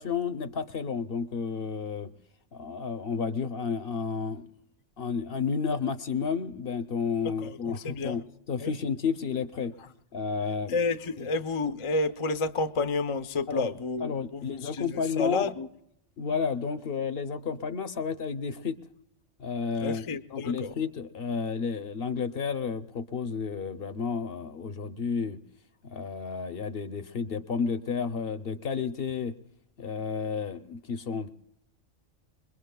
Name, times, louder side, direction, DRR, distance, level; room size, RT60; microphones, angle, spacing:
voice 1, 0.0-2.1 2.5-4.5 5.0-9.7 10.1-10.8 11.2-11.3 13.5-13.7 14.0-15.5 16.2-18.8 19.4-25.4 25.8-29.4 29.8-31.3, left 5 dB, 55° left, 0.8 m, -31 dB
voice 2, 7.8-8.2 8.6-8.7 10.7-15.7 19.8-20.7, left 3 dB, 40° left, 0.5 m, -30 dB
26.5 x 21.5 x 2.3 m
omnidirectional pair, 1.3 m